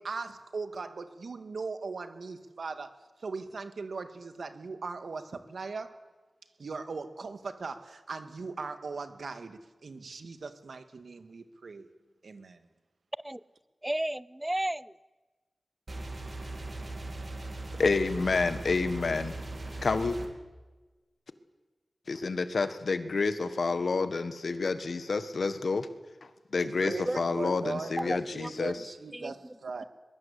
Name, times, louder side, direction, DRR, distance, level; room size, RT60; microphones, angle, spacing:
voice 1, 0.0-6.0 6.6-11.9 12.2-12.6 26.6-29.8, right 4 dB, 85° right, 9 dB, 2.0 m, -39 dB
voice 2, 13.8-15.0 27.1-27.2 28.0-28.5 29.1-29.5, right 1 dB, 15° right, 20 dB, 0.7 m, -33 dB
sound 1, 15.9-20.3, right 2 dB, 50° right, 3.4 m, -39 dB
voice 3, 17.8-19.4 19.8-20.2 22.1-25.9 26.5-28.8, left 4 dB, 75° left, 11 dB, 1.6 m, -29 dB
22.5 x 22.5 x 8.5 m, 1.2 s
wide cardioid pair, 65°, 0 cm